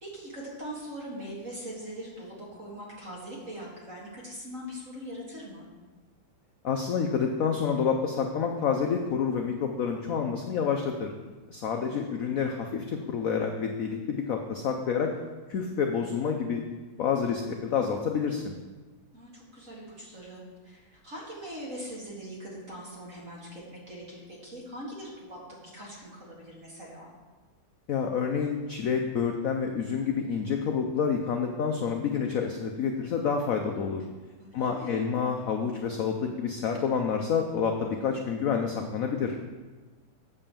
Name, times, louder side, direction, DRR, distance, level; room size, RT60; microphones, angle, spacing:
voice 1, 0.0-5.7 11.7-12.1 19.1-27.1 34.4-35.1, equal, 40° right, -4 dB, 2.5 m, -42 dB
voice 2, 6.6-11.1 11.5-15.1 15.5-16.6 17.0-18.5 27.9-34.0 34.5-39.3, left 6 dB, 65° left, 3 dB, 0.8 m, -28 dB
8.1 x 5.5 x 6.9 m, 1.3 s
omnidirectional pair, 2.1 m